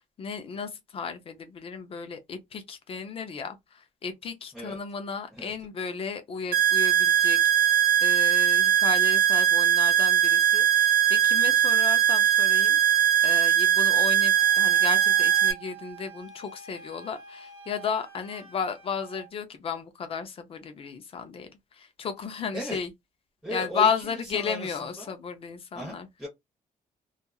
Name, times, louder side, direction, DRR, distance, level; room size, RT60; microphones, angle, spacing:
voice 1, 0.0-22.9 23.5-26.1, left 6 dB, 40° left, 0.5 m, -34 dB
sound 1, 6.5-15.5, right 10 dB, 70° right, 0.8 m, -21 dB
Wind instrument woodwind instrument, 14.3-19.3, right 4 dB, 40° right, 1.2 m, -48 dB
voice 2, 23.4-25.1 25.7-26.3, right 1 dB, ahead, 1.0 m, -37 dB
2.9 x 2.4 x 2.3 m
cardioid pair, 175°, 15 cm